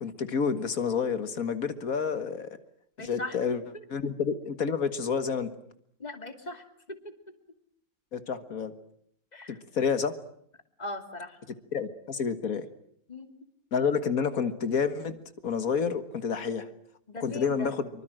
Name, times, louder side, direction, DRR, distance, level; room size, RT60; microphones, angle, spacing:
voice 1, 0.0-2.6 3.0-3.6 3.9-5.5 8.1-8.7 9.7-10.1 11.7-12.7 13.7-16.7 17.2-17.9, left 6 dB, 80° left, 10 dB, 2.0 m, -29 dB
voice 2, 3.0-3.4 3.7-3.8 6.0-7.1 9.3-9.6 10.8-11.4 13.1-13.3 17.1-17.7, left 2 dB, 30° left, 6 dB, 2.7 m, -39 dB
25.5 x 24.5 x 7.7 m, 0.68 s
omnidirectional pair, 1.5 m